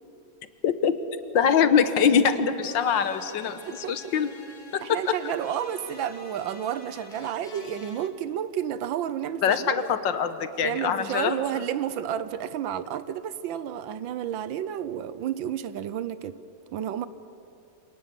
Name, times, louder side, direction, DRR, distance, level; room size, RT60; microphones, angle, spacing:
voice 1, 0.6-0.9 1.3-3.6 3.9-4.3 4.7-5.0 9.4-11.4, left 7 dB, 70° left, 11 dB, 1.7 m, -23 dB
sound 1, 2.6-8.1, left 3 dB, 30° left, 1.4 m, -47 dB
voice 2, 4.8-9.8 10.6-16.4 16.7-17.1, right 10 dB, 80° right, 15 dB, 1.5 m, -31 dB
26.5 x 18.5 x 8.5 m, 2.8 s
omnidirectional pair, 2.1 m